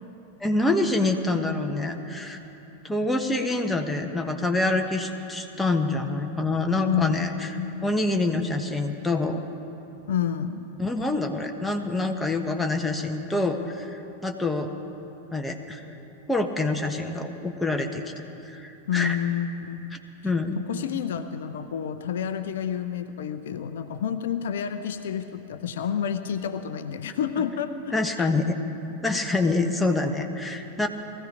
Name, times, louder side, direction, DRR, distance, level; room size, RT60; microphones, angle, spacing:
voice 1, 0.4-2.4 2.8-9.4 10.8-14.7 15.3-15.8 16.3-18.0 18.4-19.2 19.9-20.0 20.2-20.6 27.9-28.5 29.0-30.9, left 2 dB, 5° left, 3 dB, 1.2 m, -26 dB
voice 2, 6.9-7.9 10.1-10.6 18.9-20.0 20.7-28.3, left 8 dB, 60° left, 10 dB, 0.6 m, -29 dB
19.5 x 14.5 x 5.0 m, 2.9 s
figure-of-eight pair, 90°, 0 cm